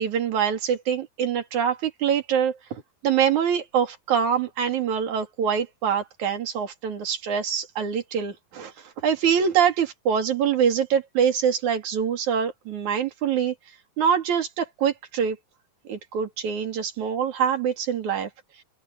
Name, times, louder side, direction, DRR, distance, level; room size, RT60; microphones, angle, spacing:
voice 1, 0.0-13.6 14.0-15.4 15.9-18.3, right 7 dB, 60° right, 4.0 m, -24 dB
open air
omnidirectional pair, 3.8 m